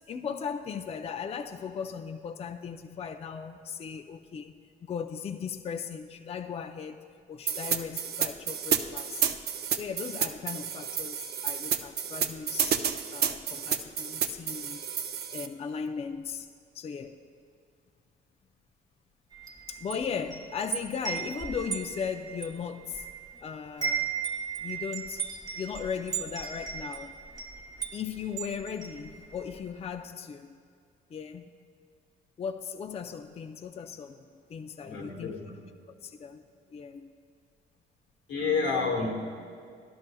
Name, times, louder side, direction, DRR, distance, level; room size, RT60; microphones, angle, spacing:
voice 1, 0.0-4.5 4.8-9.2 9.7-14.8 15.3-16.5 16.7-17.2 19.7-23.1 23.4-24.1 24.6-25.2 25.6-27.2 27.9-30.6 31.1-31.5 32.4-35.3 36.0-36.4 36.7-37.1, left 6 dB, 30° left, 8 dB, 0.4 m, -37 dB
sound 1, 7.5-15.5, right 8 dB, 55° right, 0.5 m, -30 dB
Wind chime, 19.3-23.4 23.6-29.6, right 7 dB, 20° right, 0.9 m, -36 dB
voice 2, 34.8-35.5 38.3-39.1, left 4 dB, 85° left, 0 dB, 1.5 m, -29 dB
12.0 x 12.0 x 2.3 m, 2.2 s
cardioid pair, 90°, 20 cm